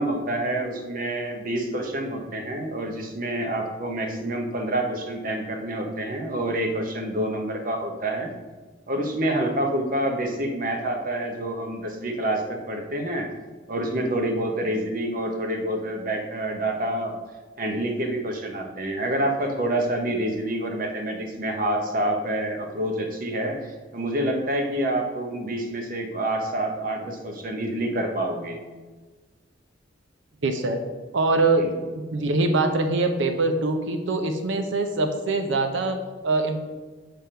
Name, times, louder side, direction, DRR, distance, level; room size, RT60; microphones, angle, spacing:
voice 1, 0.0-8.3 8.9-13.3 13.7-17.2 17.6-28.6 31.6-31.7, right 1 dB, 45° right, 3 dB, 0.9 m, -27 dB
voice 2, 30.4-30.8 31.1-31.7 31.9-36.0 36.2-36.6, right 2 dB, 75° right, 6 dB, 0.6 m, -23 dB
7.5 x 3.5 x 5.5 m, 1.3 s
head